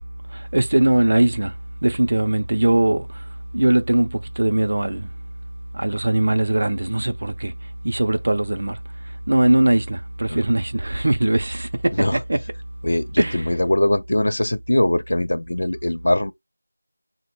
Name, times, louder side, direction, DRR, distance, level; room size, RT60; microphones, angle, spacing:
voice 1, 0.3-1.5 1.8-3.1 3.5-5.1 5.7-7.5 7.8-8.8 9.3-12.4 13.2-13.5, right 1 dB, 45° right, 0.4 m, -20 dB
voice 2, 12.8-16.3, left 1 dB, 55° left, 0.4 m, -21 dB
4.1 x 2.1 x 3.0 m
figure-of-eight pair, 175°, 0 cm